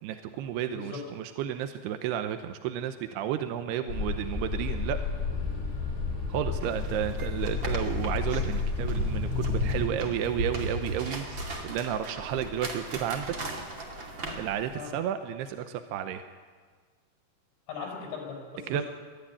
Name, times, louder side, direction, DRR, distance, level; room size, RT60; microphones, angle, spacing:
voice 1, 0.0-5.0 6.3-13.4 14.4-16.2 18.7-18.9, right 10 dB, 80° right, 8 dB, 2.5 m, -32 dB
sound 1, 3.9-9.9, left 5 dB, 40° left, 6.3 m, -31 dB
sound 2, 6.6-14.8, right 1 dB, 35° right, 2.1 m, -35 dB
voice 2, 17.7-18.9, left 5 dB, 70° left, 0 dB, 7.4 m, -39 dB
22.0 x 13.5 x 9.9 m, 1.5 s
omnidirectional pair, 5.6 m